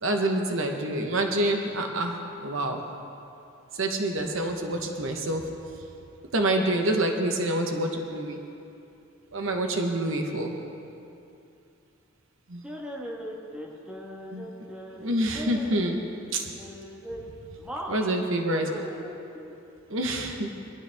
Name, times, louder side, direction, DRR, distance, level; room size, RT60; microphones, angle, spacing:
voice 1, 0.0-2.8 3.7-5.5 6.3-8.4 9.3-10.6 12.5-12.6 14.3-14.5 15.0-16.0 16.3-16.5 17.9-18.7 19.9-20.5, right 1 dB, 65° right, 3 dB, 1.1 m, -27 dB
voice 2, 12.6-16.0 16.6-17.2 17.6-18.2 18.5-19.5, equal, 5° right, -3 dB, 1.5 m, -39 dB
20.5 x 12.5 x 3.5 m, 2.7 s
head